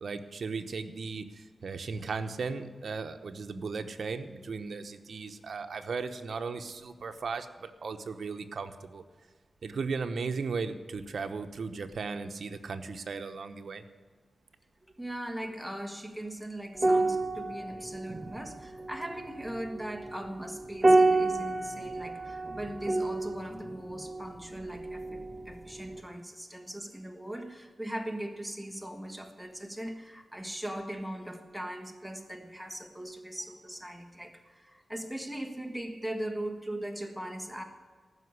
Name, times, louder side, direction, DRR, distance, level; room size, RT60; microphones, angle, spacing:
voice 1, 0.0-9.0 9.6-13.8, right 4 dB, 70° right, 7 dB, 1.0 m, -36 dB
voice 2, 15.0-37.6, right 1 dB, ahead, 4 dB, 1.6 m, -39 dB
sound 1, 16.8-25.5 25.8-26.0, right 2 dB, 30° right, 1.2 m, -29 dB
14.5 x 6.1 x 9.6 m, 1.5 s
wide cardioid pair, 100°, 0 cm